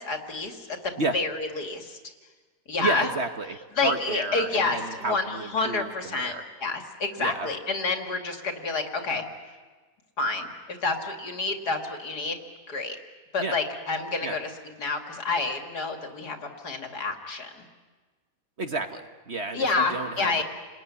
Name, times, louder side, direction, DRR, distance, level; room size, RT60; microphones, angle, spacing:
voice 1, 0.0-2.0 2.7-3.1 3.8-9.2 10.2-12.4 12.7-13.0 13.3-14.5 14.8-17.7 19.5-20.4, left 3 dB, 65° left, 4 dB, 3.0 m, -29 dB
voice 2, 2.8-6.4 7.2-7.5 13.4-13.6 14.2-14.4 18.6-20.4, right 3 dB, 40° right, 6 dB, 1.5 m, -31 dB
29.0 x 20.5 x 9.8 m, 1.4 s
omnidirectional pair, 1.8 m